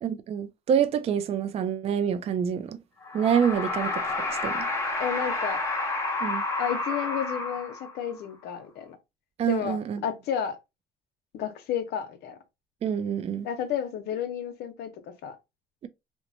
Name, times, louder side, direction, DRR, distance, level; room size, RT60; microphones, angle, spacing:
voice 1, 0.0-2.8 3.1-4.6 6.2-6.4 9.4-10.0 12.8-13.5, right 8 dB, 40° right, 0.3 m, -27 dB
sound 1, 3.0-8.1, left 2 dB, 15° left, 0.9 m, -30 dB
voice 2, 5.0-5.6 6.6-9.0 9.5-9.8 10.0-10.6 11.3-12.4 13.4-14.9 15.2-15.4, left 9 dB, 75° left, 0.7 m, -31 dB
3.0 x 2.1 x 2.6 m
cardioid pair, 110°, 17 cm